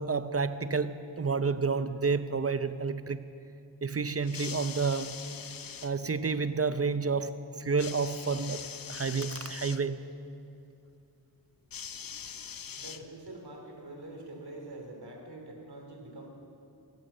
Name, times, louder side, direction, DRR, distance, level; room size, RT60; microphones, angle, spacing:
voice 1, 0.0-3.2 3.8-5.2 5.8-8.6 8.9-10.0, right 4 dB, 35° right, 0.7 m, -30 dB
sound 1, 4.2-5.9 7.8-9.8 11.7-13.4 14.4-14.5, left 7 dB, 55° left, 0.7 m, -42 dB
voice 2, 12.7-16.3, right 2 dB, 60° right, 2.9 m, -45 dB
15.0 x 10.5 x 6.7 m
cardioid pair, 40°, 42 cm